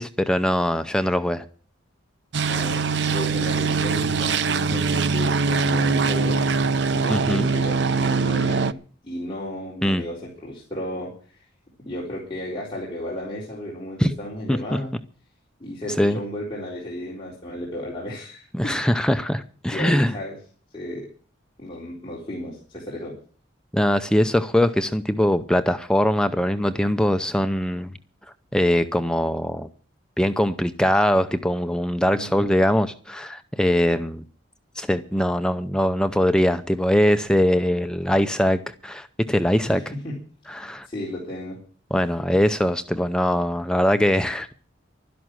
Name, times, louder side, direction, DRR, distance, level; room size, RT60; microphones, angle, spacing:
voice 1, 0.0-1.4 7.1-7.5 9.8-10.0 14.0-14.1 14.5-14.6 16.0-16.2 18.5-20.1 23.7-27.9 28.5-29.7 30.2-34.2 34.8-39.8 40.5-40.9 41.9-44.5, equal, 5° left, 0.6 m, -22 dB
sound 1, 2.3-8.7, right 4 dB, 60° right, 0.6 m, -22 dB
voice 2, 2.5-6.4 6.9-8.8 9.0-11.4 11.8-14.9 15.6-18.8 19.7-20.3 20.7-21.1 21.6-23.1 32.1-32.4 39.6-40.2 40.9-41.6, left 1 dB, 25° left, 3.9 m, -33 dB
12.5 x 11.0 x 7.5 m
head